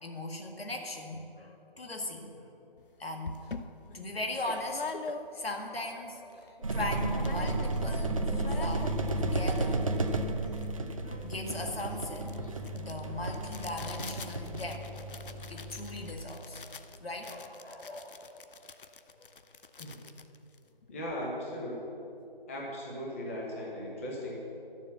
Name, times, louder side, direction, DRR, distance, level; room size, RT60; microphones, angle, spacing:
voice 1, 0.0-2.5 3.0-3.5 3.9-5.0 5.3-8.9 9.2-9.9 11.0-12.3 12.7-16.6 17.0-18.4 19.2-19.3, left 1 dB, 90° left, 2 dB, 1.9 m, -39 dB
sound 1, 2.8-2.9 3.2-5.6 6.0-6.1 6.3-6.8 7.1-7.9 8.2-21.2, left 4 dB, 65° left, 0.7 m, -45 dB
sound 2, 6.6-16.2, right 2 dB, 35° right, 0.6 m, -33 dB
voice 2, 20.9-21.8 22.5-24.5, equal, 15° left, -3 dB, 1.1 m, -38 dB
11.5 x 7.3 x 6.9 m, 2.9 s
figure-of-eight pair, 165°, 29 cm